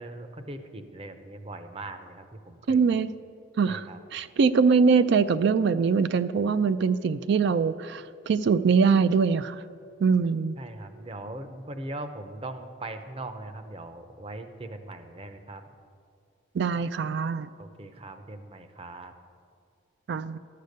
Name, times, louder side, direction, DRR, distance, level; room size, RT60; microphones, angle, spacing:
voice 1, 0.0-3.1 3.7-4.0 10.6-15.6 17.6-19.1, right 2 dB, 30° right, 8 dB, 0.7 m, -40 dB
voice 2, 2.7-3.1 3.6-9.6 10.0-10.5 16.5-17.5 20.1-20.4, right 5 dB, 60° right, 13 dB, 0.3 m, -23 dB
12.5 x 6.7 x 6.6 m, 2.3 s
head